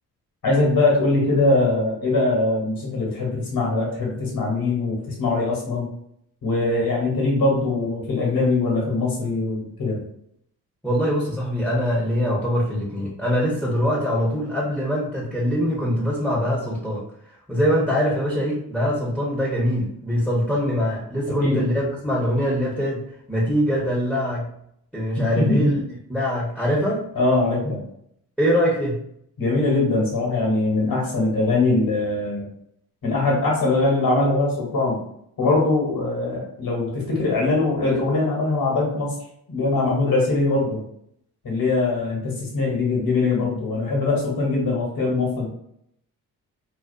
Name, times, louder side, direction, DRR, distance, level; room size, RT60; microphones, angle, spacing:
voice 1, 0.4-5.9 6.4-10.0 21.4-21.7 25.2-25.7 27.1-27.8 29.4-32.5 33.0-35.0 35.4-39.2 39.5-40.8 41.4-45.5, left 2 dB, 60° left, -3 dB, 1.2 m, -22 dB
voice 2, 10.8-17.0 17.5-24.5 24.9-25.8 26.1-27.0 28.4-29.0, equal, ahead, -5 dB, 0.8 m, -23 dB
2.5 x 2.3 x 2.4 m, 0.72 s
supercardioid pair, 45°, 40 cm